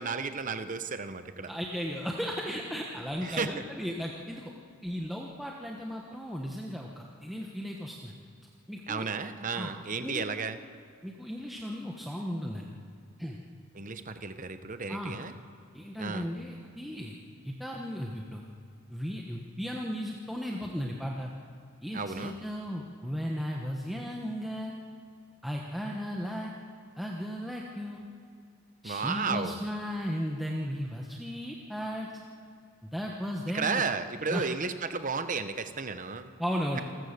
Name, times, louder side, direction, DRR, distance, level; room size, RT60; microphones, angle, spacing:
voice 1, 0.0-1.5 3.2-3.6 8.9-10.6 13.7-15.3 16.0-16.2 21.9-22.4 28.8-29.6 33.5-36.3, right 5 dB, 35° right, 10 dB, 0.9 m, -33 dB
voice 2, 1.5-4.5 4.8-8.2 8.7-9.1 9.5-9.7 10.0-10.2 11.0-12.7 13.2-13.4 14.9-15.2 15.7-17.2 17.4-18.4 18.9-21.3 21.8-24.7 25.4-26.5 27.0-28.1 28.8-32.1 32.8-33.8 34.3-34.5 36.4-36.8, equal, ahead, -1 dB, 1.1 m, -35 dB
27.5 x 14.5 x 6.7 m, 2.3 s
head